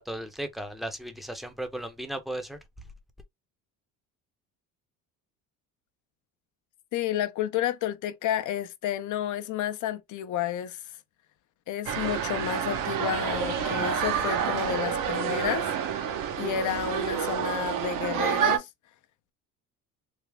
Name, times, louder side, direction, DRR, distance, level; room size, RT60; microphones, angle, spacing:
voice 1, 0.0-2.6, right 1 dB, ahead, 0.7 m, -36 dB
voice 2, 6.9-10.8 11.7-15.7 16.4-18.7, left 10 dB, 55° left, 0.6 m, -31 dB
sound 1, 11.9-18.6, right 8 dB, 60° right, 0.8 m, -28 dB
Laughter / Crowd, 12.9-16.2 16.5-16.6 17.2-17.3 17.4-17.5, left 6 dB, 70° left, 1.0 m, -43 dB
3.5 x 2.0 x 3.3 m
cardioid pair, 100°, 36 cm